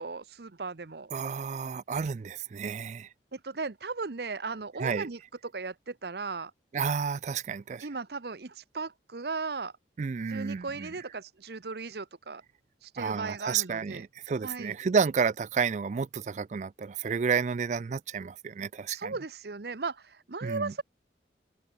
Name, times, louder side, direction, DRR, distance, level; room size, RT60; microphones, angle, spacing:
voice 1, 0.0-1.1 3.3-6.5 7.8-9.7 10.3-12.4 12.8-14.1 14.4-14.7 18.9-20.8, right 4 dB, 65° right, 0.8 m, -37 dB
voice 2, 1.1-3.1 4.8-5.1 6.7-7.9 10.0-10.9 13.0-19.1 20.4-20.7, right 6 dB, 40° right, 0.3 m, -31 dB
head